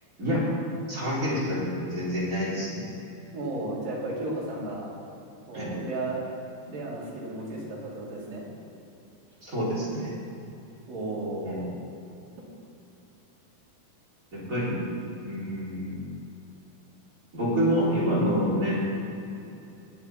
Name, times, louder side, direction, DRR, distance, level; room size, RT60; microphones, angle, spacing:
voice 1, 0.9-2.8 5.5-5.7 9.4-10.1 11.4-11.6 14.3-14.8 15.2-16.0 17.3-18.8, equal, 20° right, -8 dB, 3.9 m, -27 dB
voice 2, 3.3-4.9 5.5-6.2 6.7-8.5 10.9-11.7, right 2 dB, 65° right, -6 dB, 4.4 m, -34 dB
20.0 x 9.2 x 4.3 m, 2.9 s
omnidirectional pair, 4.3 m